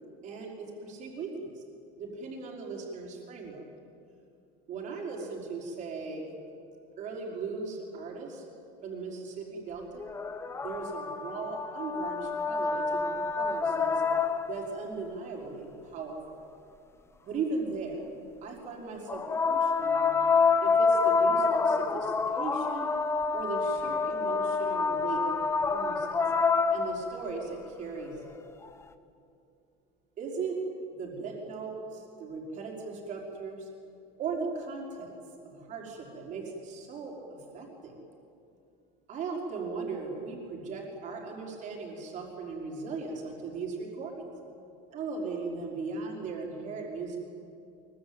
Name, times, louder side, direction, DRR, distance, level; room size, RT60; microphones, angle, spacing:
voice 1, 0.2-1.6 2.0-3.6 4.7-6.3 7.0-8.4 8.8-10.1 10.5-14.0 14.4-16.4 17.2-18.0 18.4-20.1 20.6-22.9 23.3-26.2 26.7-28.2 30.2-30.6 31.0-33.7 34.2-35.1 35.4-37.2 37.5-37.9 39.1-44.3 44.9-47.2, right 4 dB, 35° right, -1 dB, 5.1 m, -38 dB
sound 1, 10.0-14.7 19.1-27.3 28.6-28.7, left 4 dB, 10° left, 0.8 m, -27 dB
24.0 x 23.5 x 8.9 m, 2.6 s
cardioid pair, 170°, 21 cm